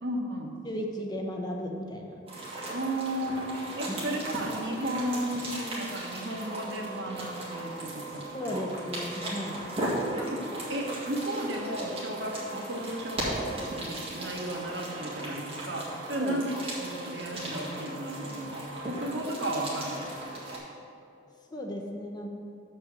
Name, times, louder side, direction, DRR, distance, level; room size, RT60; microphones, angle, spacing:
voice 1, 0.0-0.5 2.7-8.6 10.1-20.1, right 1 dB, 60° right, 0 dB, 1.2 m, -34 dB
voice 2, 0.6-2.2 3.9-4.0 8.3-9.7 16.2-16.4 21.5-22.3, equal, 20° left, 1 dB, 0.6 m, -35 dB
sound 1, 2.3-20.6, right 1 dB, 30° right, 1.9 m, -37 dB
7.3 x 5.5 x 6.8 m, 2.5 s
head